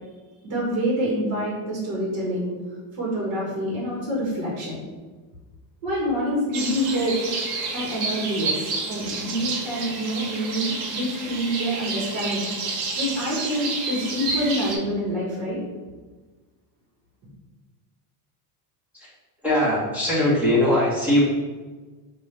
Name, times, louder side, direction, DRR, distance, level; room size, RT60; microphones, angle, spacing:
voice 1, 0.4-2.5 2.9-4.8 5.8-7.1 7.7-12.4 12.9-15.6, equal, 40° right, -4 dB, 1.4 m, -26 dB
sound 1, 6.5-14.8, right 3 dB, 80° right, 1.1 m, -30 dB
voice 2, 19.4-21.2, left 1 dB, 5° right, -9 dB, 1.2 m, -21 dB
5.7 x 2.6 x 3.3 m, 1.3 s
cardioid pair, 165°, 47 cm